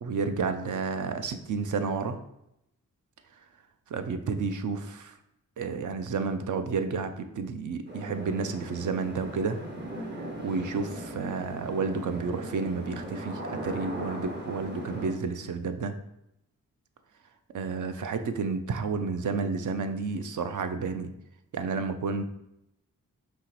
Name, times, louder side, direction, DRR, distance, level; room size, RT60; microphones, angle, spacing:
voice 1, 0.0-2.2 3.9-5.2 5.6-9.6 9.9-15.9 17.5-21.1 21.5-22.2, right 4 dB, 60° right, 9 dB, 0.5 m, -31 dB
sound 1, 7.9-15.1, right 1 dB, 30° right, 1.0 m, -38 dB
5.4 x 2.9 x 3.0 m, 0.82 s
cardioid pair, 50°, 35 cm